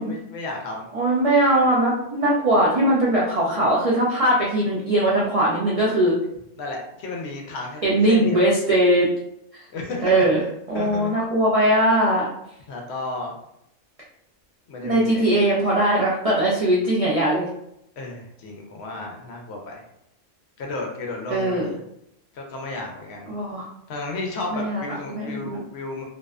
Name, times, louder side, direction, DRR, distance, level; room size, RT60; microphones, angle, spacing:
voice 1, 0.0-0.9 6.6-8.5 9.7-10.3 10.7-11.1 12.7-13.4 14.7-15.3 18.0-19.8 20.6-21.8 22.3-23.3 23.9-26.0, left 2 dB, 65° left, 1 dB, 0.8 m, -33 dB
voice 2, 0.9-6.2 7.8-9.1 10.0-10.4 10.7-12.3 14.8-17.4 21.3-21.7 23.3-23.7 24.5-24.8 25.1-25.6, right 1 dB, 70° right, -6 dB, 0.3 m, -20 dB
2.6 x 2.1 x 2.4 m, 0.78 s
omnidirectional pair, 1.3 m